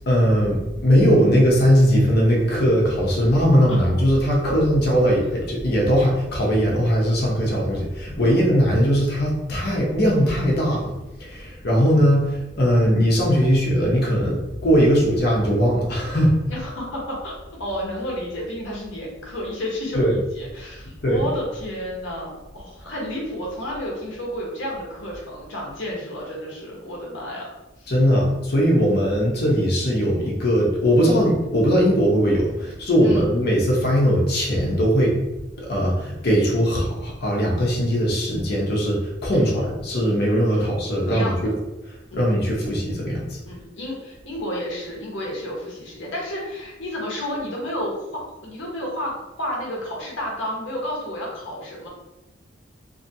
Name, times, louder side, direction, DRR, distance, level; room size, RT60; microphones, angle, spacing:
voice 1, 0.1-16.3 19.9-20.1 20.8-21.2 27.9-35.1 35.6-41.5 42.1-43.4, equal, 60° left, -2 dB, 0.9 m, -20 dB
voice 2, 3.7-4.2 8.2-8.5 16.5-17.3 17.6-27.5 27.8-27.9 33.0-33.3 39.3-39.7 40.5-40.7 41.1-41.5 42.1-42.3 43.4-49.1 49.4-51.9, equal, 85° left, -3 dB, 1.0 m, -31 dB
2.8 x 2.6 x 2.7 m, 1.0 s
head